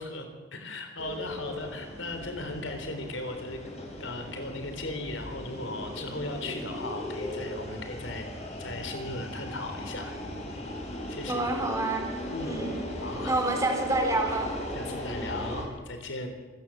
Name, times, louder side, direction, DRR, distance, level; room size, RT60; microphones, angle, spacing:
voice 1, 0.0-3.6 4.0-8.3 8.6-10.1 11.1-11.4 12.3-12.6 13.0-13.4 14.7-16.3, left 2 dB, 90° left, 6 dB, 3.8 m, -37 dB
sound 1, 1.0-15.6, left 1 dB, 35° left, 5.6 m, -38 dB
voice 2, 11.3-12.0 12.4-12.8 13.2-14.5, right 2 dB, 15° right, 2 dB, 3.9 m, -28 dB
27.0 x 15.0 x 7.6 m, 1.3 s
head